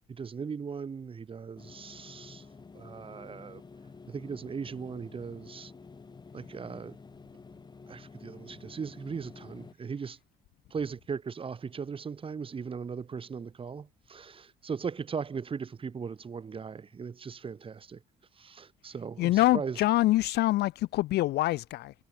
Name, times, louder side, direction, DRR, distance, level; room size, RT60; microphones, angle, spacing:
voice 1, 0.1-2.5 2.7-3.6 4.1-5.7 6.3-7.0 7.9-10.2 10.7-18.0 18.4-19.8, right 6 dB, 30° right, 2.9 m, -38 dB
sound 1, 1.6-9.7, left 4 dB, 25° left, 7.7 m, -50 dB
voice 2, 19.2-21.9, left 16 dB, 75° left, 1.7 m, -25 dB
cardioid pair, 110°, 17 cm